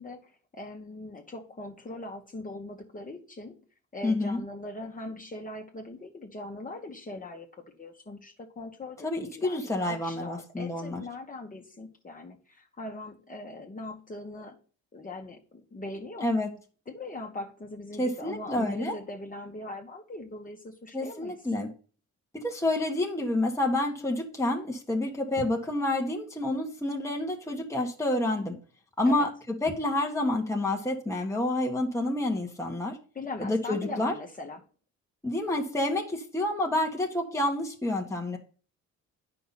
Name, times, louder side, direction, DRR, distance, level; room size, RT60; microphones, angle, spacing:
voice 1, 0.0-3.6 3.9-14.6 14.9-16.3 16.9-21.4 29.0-29.3 33.1-34.6, left 2 dB, 25° left, 2 dB, 1.6 m, -41 dB
voice 2, 4.0-4.4 9.0-11.0 16.2-16.5 18.0-18.9 20.9-21.7 22.3-28.6 29.0-29.3 29.6-33.0 33.4-34.1 35.2-38.4, left 1 dB, 10° left, 0 dB, 1.6 m, -28 dB
9.1 x 5.9 x 4.1 m, 0.40 s
cardioid pair, 90°, 30 cm